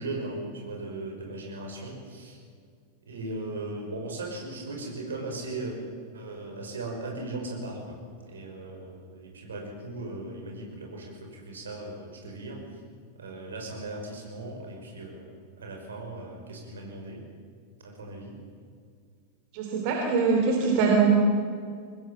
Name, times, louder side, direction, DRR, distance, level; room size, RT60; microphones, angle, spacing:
voice 1, 0.0-2.4 3.1-5.8 6.1-8.0 8.3-12.6 13.2-15.3 15.6-17.2 17.8-18.3, right 2 dB, 70° right, 1 dB, 5.8 m, -38 dB
voice 2, 19.5-21.1, right 5 dB, 45° right, 1 dB, 3.1 m, -23 dB
23.5 x 20.0 x 7.3 m, 2.1 s
figure-of-eight pair, 90°, 0 cm